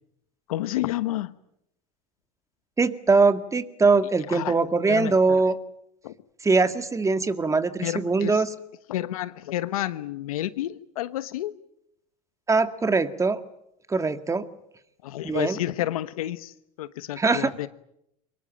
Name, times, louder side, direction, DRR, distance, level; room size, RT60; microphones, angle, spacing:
voice 1, 0.5-1.3 4.3-4.6 4.9-5.5 6.0-6.1 7.8-8.4 8.9-11.5 15.0-17.7, left 14 dB, 85° left, 14 dB, 1.2 m, -30 dB
voice 2, 2.8-5.6 6.4-8.5 12.5-13.4 13.9-14.4 15.2-15.6 17.2-17.5, right 4 dB, 15° right, 10 dB, 1.9 m, -22 dB
24.5 x 21.0 x 9.0 m, 0.80 s
supercardioid pair, 95°, 18 cm